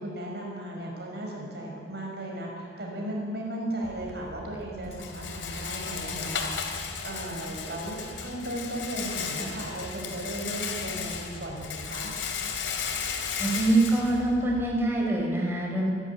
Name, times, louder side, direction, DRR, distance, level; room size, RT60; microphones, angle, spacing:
voice 1, 0.0-6.5 7.0-12.1, right 1 dB, 60° right, -1 dB, 6.0 m, -36 dB
Rattle, 3.8-14.9, left 6 dB, 90° left, 2.7 m, -35 dB
voice 2, 13.4-15.9, right 2 dB, 10° right, -1 dB, 4.6 m, -24 dB
26.0 x 12.0 x 9.2 m, 2.4 s
head